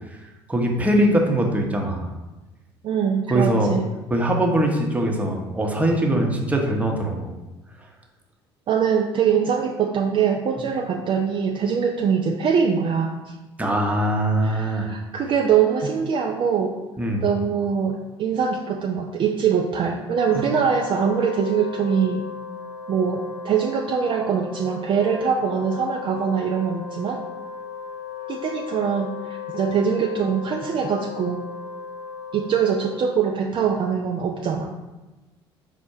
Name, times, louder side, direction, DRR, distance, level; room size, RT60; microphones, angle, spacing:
voice 1, 0.5-2.1 3.3-3.8 4.1-7.3 13.6-14.9 17.0-17.3, right 1 dB, 10° right, 1 dB, 0.8 m, -22 dB
voice 2, 2.8-3.9 8.7-13.1 14.4-16.7 17.2-22.3 22.9-27.2 28.3-31.4 32.3-34.8, right 7 dB, 40° right, 2 dB, 0.4 m, -23 dB
Wind instrument woodwind instrument, 20.1-33.5, left 5 dB, 35° left, 0.5 m, -36 dB
4.2 x 2.1 x 4.5 m, 1.1 s
figure-of-eight pair, 60°, 13 cm